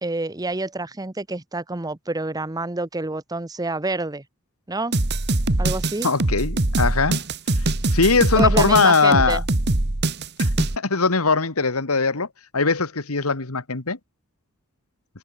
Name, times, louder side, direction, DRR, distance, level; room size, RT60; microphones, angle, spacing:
voice 1, 0.0-4.2 4.7-5.0 5.6-6.1 8.4-9.4, right 2 dB, 15° right, 0.9 m, -28 dB
sound 1, 4.9-10.8, right 2 dB, 50° right, 1.7 m, -22 dB
voice 2, 6.0-7.2 7.6-7.7 7.9-9.4 10.4-12.3 12.5-14.0, left 4 dB, 80° left, 1.9 m, -20 dB
head